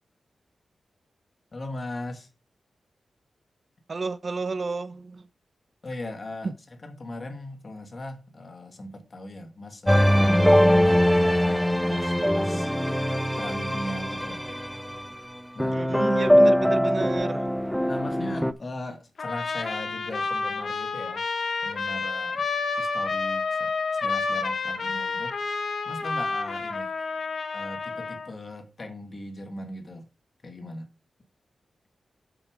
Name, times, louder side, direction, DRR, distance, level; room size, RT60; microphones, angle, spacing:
voice 1, 1.5-2.3 5.8-6.5 6.8-10.4 10.8-12.7 13.4-14.4 15.5-15.8 17.8-21.2 21.6-22.4 22.8-23.7 24.0-25.4 25.8-26.9 27.5-30.1 30.4-30.9, left 1 dB, 35° left, 1.6 m, -38 dB
voice 2, 3.9-5.3 6.4-6.5 15.7-17.5, right 4 dB, 35° right, 0.6 m, -31 dB
sound 1, 9.9-15.1 15.6-18.5, equal, ahead, 0.4 m, -22 dB
Trumpet, 19.2-28.3, left 4 dB, 55° left, 1.2 m, -29 dB
7.8 x 6.8 x 4.8 m
wide cardioid pair, 165°, 0 cm